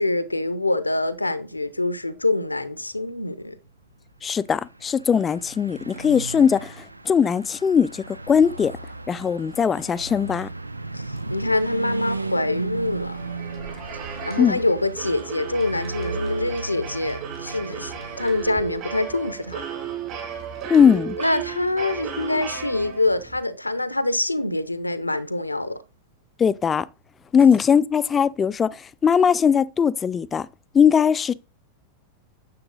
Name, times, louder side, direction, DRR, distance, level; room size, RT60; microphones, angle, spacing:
voice 1, 0.0-3.6 10.9-13.2 14.2-19.6 21.2-25.8, left 2 dB, 85° left, 0.8 m, -25 dB
voice 2, 4.2-8.7 9.1-10.5 14.4-14.6 20.7-21.2 26.4-26.9 27.3-30.5 30.7-31.3, left 7 dB, 20° left, 0.4 m, -20 dB
Car passing by / Truck, 4.3-18.7, right 3 dB, 85° right, 0.6 m, -35 dB
sound 1, 12.9-23.4, right 8 dB, 40° right, 4.2 m, -35 dB
9.8 x 7.5 x 3.8 m
figure-of-eight pair, 90°, 0 cm